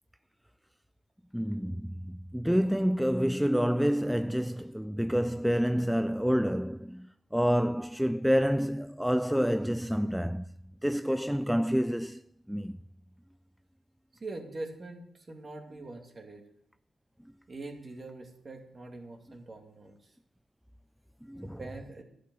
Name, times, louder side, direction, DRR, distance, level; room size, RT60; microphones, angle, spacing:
voice 1, 1.3-10.5 10.8-12.2 12.5-12.8 21.3-21.6, equal, ahead, 0.3 m, -28 dB
voice 2, 14.1-16.4 17.5-20.1 21.4-22.0, right 2 dB, 35° right, 2.5 m, -43 dB
12.0 x 8.4 x 6.3 m
cardioid pair, 95°, 0 cm